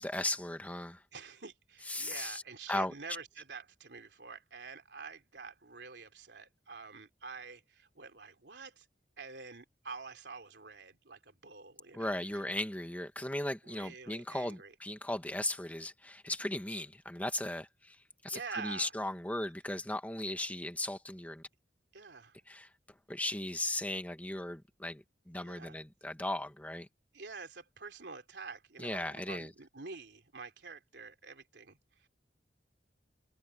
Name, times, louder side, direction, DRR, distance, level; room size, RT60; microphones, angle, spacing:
voice 1, 0.0-1.0 1.9-2.4 2.7-2.9 11.9-18.0 18.2-21.5 22.5-22.7 23.1-26.9 28.8-29.5, left 1 dB, 10° left, 1.5 m, -37 dB
voice 2, 1.1-8.9 9.2-12.4 13.6-14.7 18.3-18.9 21.9-22.4 25.4-25.8 27.1-32.1, right 4 dB, 80° right, 3.2 m, -47 dB
head